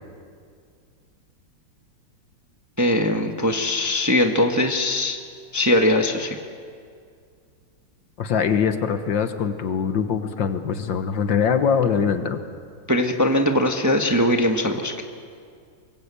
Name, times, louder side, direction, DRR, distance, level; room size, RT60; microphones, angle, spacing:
voice 1, 2.8-5.2 5.5-6.4 12.9-14.9, left 1 dB, 10° right, 4 dB, 1.1 m, -21 dB
voice 2, 8.2-12.4, left 7 dB, 65° left, 8 dB, 1.9 m, -22 dB
24.0 x 22.0 x 8.4 m, 2.2 s
omnidirectional pair, 2.2 m